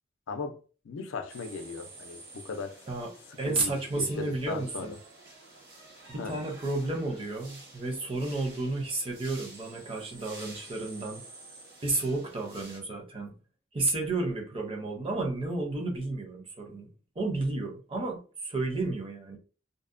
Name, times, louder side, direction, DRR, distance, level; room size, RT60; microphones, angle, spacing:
voice 1, 0.3-0.6 0.8-2.8 3.4-5.0 6.2-6.4, left 4 dB, 80° left, 0.4 m, -37 dB
sound 1, 1.3-12.8, right 2 dB, 50° right, 0.9 m, -50 dB
voice 2, 3.4-4.9 6.1-11.2 11.8-13.3 13.7-16.9 17.2-19.4, right 2 dB, 30° right, 0.6 m, -32 dB
2.6 x 2.0 x 2.5 m
head